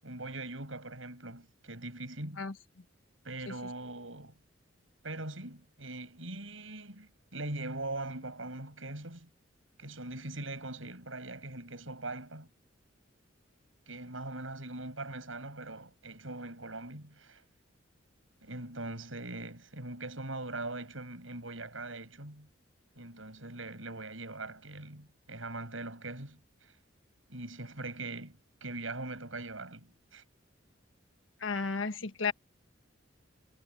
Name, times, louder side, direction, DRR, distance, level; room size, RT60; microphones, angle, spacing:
voice 1, 0.0-2.4 3.2-4.3 5.0-9.3 9.8-12.5 13.9-17.4 18.4-22.5 23.0-26.7 27.3-30.2, right 2 dB, 90° right, 7.9 m, -41 dB
voice 2, 31.4-32.3, left 4 dB, 90° left, 1.5 m, -33 dB
head